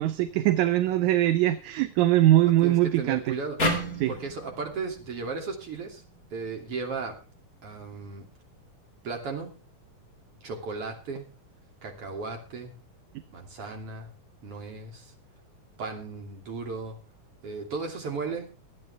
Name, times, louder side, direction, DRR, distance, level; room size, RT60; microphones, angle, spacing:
voice 1, 0.0-3.4 4.0-4.1, right 14 dB, 75° right, 11 dB, 2.0 m, -22 dB
voice 2, 2.6-3.6 4.1-6.0 6.3-7.2 7.6-8.2 9.0-9.5 10.4-11.3 11.8-12.7 13.3-14.1 14.4-15.1 15.8-17.0 17.4-18.5, right 4 dB, 45° right, 2 dB, 3.7 m, -35 dB
sound 1, 3.6-6.8, equal, 25° left, 3.2 m, -33 dB
24.5 x 9.4 x 3.5 m, 0.34 s
omnidirectional pair, 3.7 m